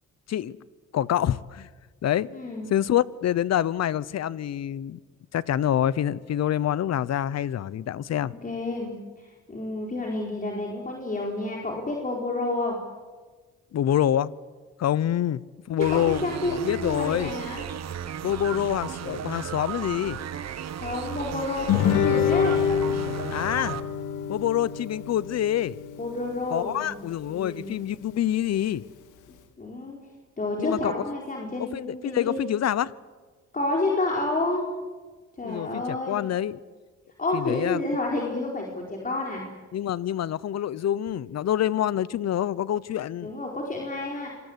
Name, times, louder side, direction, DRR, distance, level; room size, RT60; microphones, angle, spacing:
voice 1, 0.9-1.7 2.0-2.3 2.7-5.0 5.3-8.3 13.7-14.3 14.8-15.4 15.7-16.2 16.5-17.3 18.2-20.2 23.3-23.8 24.3-25.8 26.5-28.8 30.6-30.9 31.6-32.9 35.4-36.6 37.3-37.8 39.7-43.3, left 11 dB, 60° left, 0.9 m, -26 dB
voice 2, 2.3-2.7 8.2-12.8 15.9-17.6 20.8-22.6 26.0-26.9 27.3-27.7 29.6-30.0 30.4-32.4 33.5-34.6 35.4-36.2 37.2-39.4 43.2-44.3, left 2 dB, 25° left, 4.5 m, -30 dB
sound 1, 15.8-23.8, right 9 dB, 60° right, 1.5 m, -35 dB
Guitar, 21.7-26.7, left 8 dB, 90° left, 1.9 m, -27 dB
26.5 x 22.0 x 8.3 m
cardioid pair, 90°, 30 cm